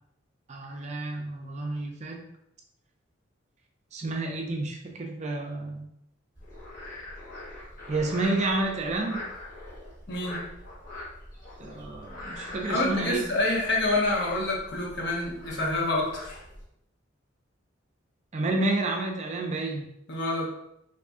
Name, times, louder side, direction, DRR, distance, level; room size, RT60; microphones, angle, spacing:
voice 1, 0.5-2.2 3.9-5.9 7.9-9.3 11.6-13.2 18.3-19.9, right 2 dB, 35° right, 2 dB, 0.4 m, -30 dB
Frog, 6.3-16.6, left 1 dB, 45° left, 1.3 m, -42 dB
voice 2, 10.1-10.5 12.6-16.4 20.1-20.5, left 2 dB, 60° left, -2 dB, 0.8 m, -27 dB
2.7 x 2.6 x 3.5 m, 0.78 s
head